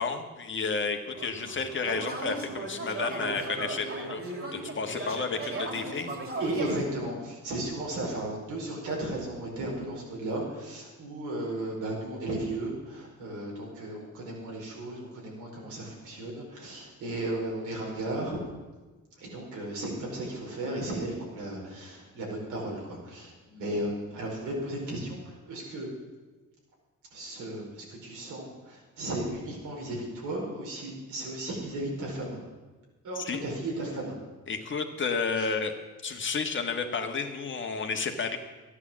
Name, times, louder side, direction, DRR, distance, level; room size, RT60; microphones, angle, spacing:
voice 1, 0.0-4.2 4.5-6.1 33.1-33.4 34.5-35.7 36.0-38.4, left 4 dB, 40° left, 5 dB, 1.6 m, -31 dB
sound 1, 1.1-6.8, right 2 dB, 45° right, 3.0 m, -36 dB
voice 2, 5.4-6.0 6.4-18.4 19.2-25.9 27.1-32.4 33.0-34.1 35.4-35.5, right 1 dB, 85° right, -2 dB, 4.8 m, -35 dB
13.0 x 9.9 x 7.5 m, 1.2 s
cardioid pair, 90°, 30 cm